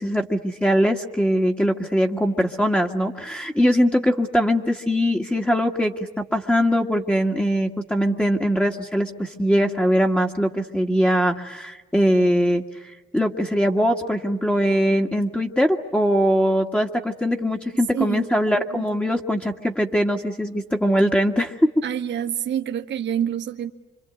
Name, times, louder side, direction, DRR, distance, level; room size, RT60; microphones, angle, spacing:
voice 1, 0.0-12.6 13.1-21.6, equal, 5° left, 1.8 m, -21 dB
voice 2, 17.7-18.3 18.6-18.9 21.8-23.7, right 9 dB, 65° right, 1.3 m, -27 dB
27.0 x 25.0 x 8.1 m
cardioid pair, 90°, 20 cm